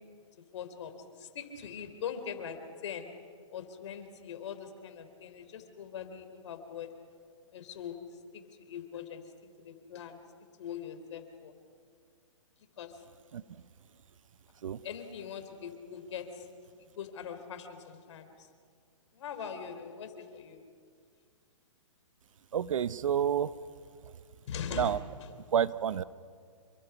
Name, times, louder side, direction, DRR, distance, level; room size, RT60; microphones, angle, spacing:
voice 1, 0.5-3.1 3.5-6.9 7.5-10.2 10.6-11.5 12.8-13.0 14.8-16.5 16.8-18.5 19.1-20.6 24.5-25.3, left 7 dB, 60° left, 7 dB, 3.5 m, -42 dB
voice 2, 13.3-13.6 14.6-14.8 22.5-23.5 24.7-25.0 25.5-26.0, right 9 dB, 75° right, 17 dB, 0.8 m, -29 dB
27.5 x 23.5 x 5.9 m, 2.1 s
hypercardioid pair, 135°, 17 cm